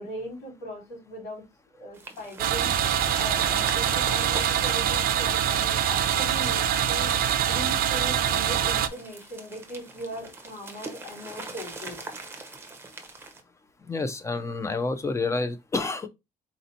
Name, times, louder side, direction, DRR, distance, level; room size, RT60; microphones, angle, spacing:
voice 1, 0.0-1.4 1.7-7.1 7.5-12.0, equal, 90° left, 3.1 m, -39 dB
sound 1, 1.9-13.4, right 3 dB, 15° right, 0.8 m, -42 dB
sound 2, 2.4-8.9, right 9 dB, 55° right, 0.5 m, -24 dB
voice 2, 13.9-16.1, left 3 dB, 15° left, 0.5 m, -29 dB
4.2 x 2.8 x 3.9 m
cardioid pair, 150°, 18 cm